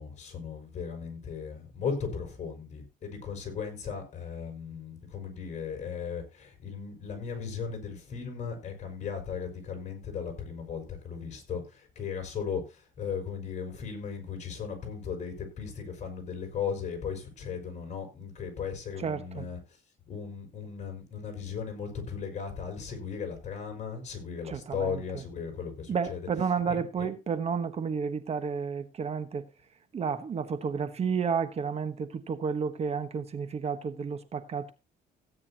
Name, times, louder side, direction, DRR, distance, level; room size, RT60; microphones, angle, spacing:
voice 1, 0.0-19.6 20.1-26.3 26.7-27.1, left 6 dB, 45° left, 6.1 m, -37 dB
voice 2, 19.0-19.4 24.5-25.0 25.9-29.4 29.9-34.7, right 6 dB, 40° right, 1.3 m, -31 dB
16.5 x 9.6 x 2.9 m
cardioid pair, 110°, 17 cm